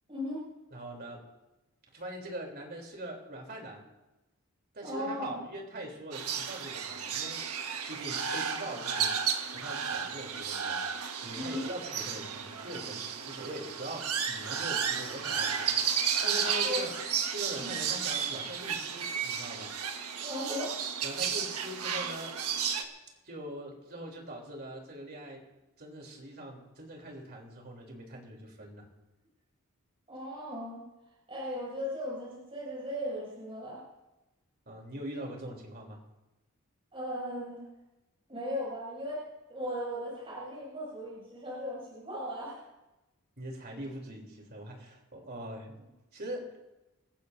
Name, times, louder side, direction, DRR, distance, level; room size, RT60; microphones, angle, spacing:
voice 1, 0.1-0.4 4.8-5.4 11.3-11.7 16.6-16.9 17.6-17.7 20.2-20.8 30.1-30.8 31.3-33.8 36.9-37.6 38.3-39.2 39.5-42.6, equal, 25° right, -7 dB, 6.7 m, -37 dB
voice 2, 0.7-1.2 1.9-3.8 4.7-7.4 7.9-9.2 9.4-10.8 11.2-16.9 17.3-19.7 21.0-22.4 23.2-25.4 25.8-28.9 34.7-36.0 43.4-46.6, right 1 dB, 45° right, 0 dB, 3.4 m, -42 dB
sound 1, 6.1-22.8, right 7 dB, 85° right, 1.4 m, -33 dB
27.5 x 15.5 x 2.7 m, 1.0 s
head